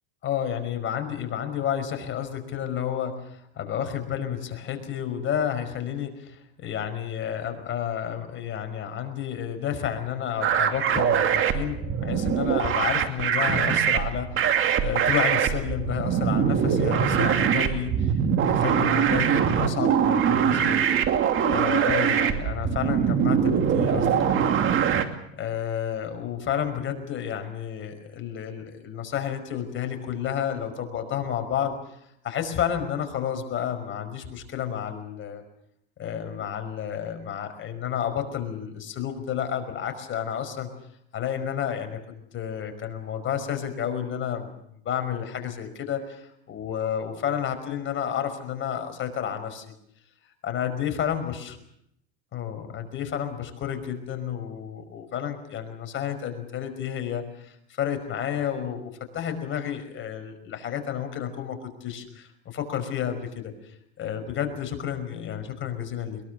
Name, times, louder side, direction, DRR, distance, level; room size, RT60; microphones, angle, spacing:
voice 1, 0.2-18.1 18.4-20.9 21.4-24.5 25.4-31.8 32.2-35.4 36.0-40.7 41.1-42.0 42.3-44.5 44.8-49.7 50.4-51.5 52.3-63.5 64.0-66.2, left 9 dB, 40° left, 7 dB, 5.4 m, -31 dB
sound 1, 10.4-25.0, right 8 dB, 40° right, 2.6 m, -23 dB
23.5 x 22.0 x 6.9 m, 0.74 s
supercardioid pair, 110°, 32 cm